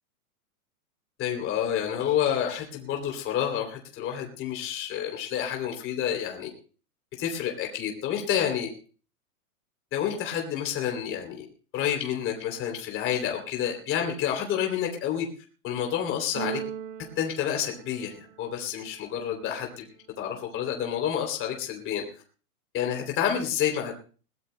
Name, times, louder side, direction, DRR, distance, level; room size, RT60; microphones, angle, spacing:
voice 1, 1.2-6.5 7.2-8.7 9.9-11.5 11.7-15.3 15.6-16.6 17.1-19.9 20.2-22.0 22.7-23.9, left 9 dB, 25° left, 2 dB, 3.1 m, -29 dB
Keyboard (musical), 16.3-18.5, right 9 dB, 55° right, 1.1 m, -38 dB
21.0 x 18.5 x 2.2 m, 0.39 s
hypercardioid pair, 130°, 45 cm